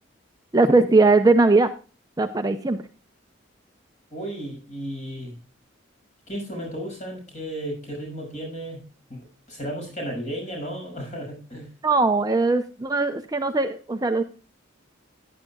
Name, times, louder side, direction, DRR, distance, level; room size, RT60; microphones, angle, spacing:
voice 1, 0.5-1.7 2.2-2.8 11.8-14.2, right 3 dB, 20° right, 7 dB, 0.6 m, -19 dB
voice 2, 4.1-5.3 6.3-8.8 9.1-11.7, equal, 40° left, 1 dB, 6.3 m, -34 dB
15.0 x 10.5 x 2.3 m, 0.34 s
head